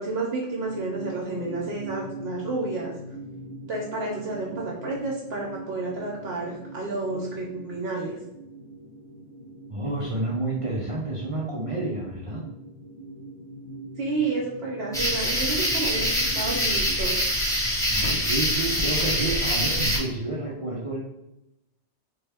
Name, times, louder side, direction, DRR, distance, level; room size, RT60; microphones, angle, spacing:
voice 1, 0.0-2.9 3.7-8.1 14.0-17.2, right 3 dB, 65° right, -2 dB, 0.9 m, -30 dB
sound 1, 0.6-16.9, right 1 dB, 45° left, 0.7 m, -42 dB
voice 2, 9.7-12.5 17.6-21.0, right 2 dB, 40° right, -6 dB, 0.5 m, -30 dB
sound 2, 14.9-20.0, equal, 5° left, 0.7 m, -24 dB
3.4 x 2.2 x 3.3 m, 0.86 s
omnidirectional pair, 1.2 m